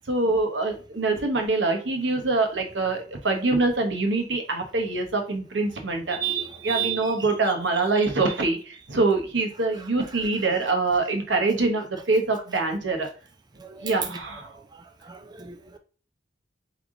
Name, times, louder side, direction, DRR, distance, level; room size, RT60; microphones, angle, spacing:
voice 1, 0.0-6.2 6.6-13.1 13.8-14.5, right 3 dB, 85° right, 1.0 m, -24 dB
voice 2, 6.1-7.3 13.6-13.9 15.0-15.8, right 11 dB, 25° right, 0.4 m, -32 dB
3.7 x 3.5 x 3.7 m
head